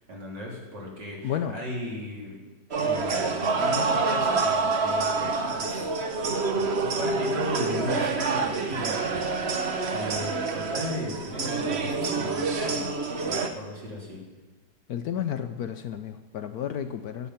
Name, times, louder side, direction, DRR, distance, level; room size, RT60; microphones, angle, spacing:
voice 1, 0.1-2.4 2.8-6.3 6.8-9.1 9.9-12.9 13.2-14.2, left 1 dB, 65° right, -3 dB, 4.0 m, -36 dB
voice 2, 1.2-1.6 14.9-17.3, left 9 dB, 65° left, 9 dB, 1.0 m, -32 dB
sound 1, 2.7-13.5, right 4 dB, 45° right, 1.0 m, -27 dB
19.5 x 8.3 x 5.7 m, 1.2 s
omnidirectional pair, 2.0 m